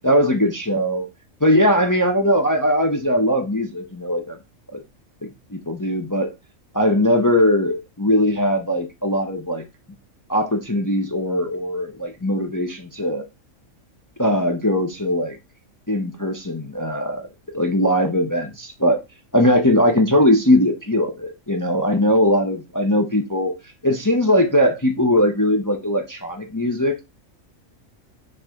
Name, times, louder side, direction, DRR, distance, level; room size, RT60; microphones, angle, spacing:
voice 1, 0.0-1.1 1.4-4.4 4.7-4.8 5.2-6.3 6.7-9.6 10.3-13.2 14.2-15.4 15.9-17.3 17.5-19.0 19.3-23.5 23.8-27.0, left 1 dB, 20° left, 0.7 m, -20 dB
6.0 x 3.2 x 5.1 m
omnidirectional pair, 1.4 m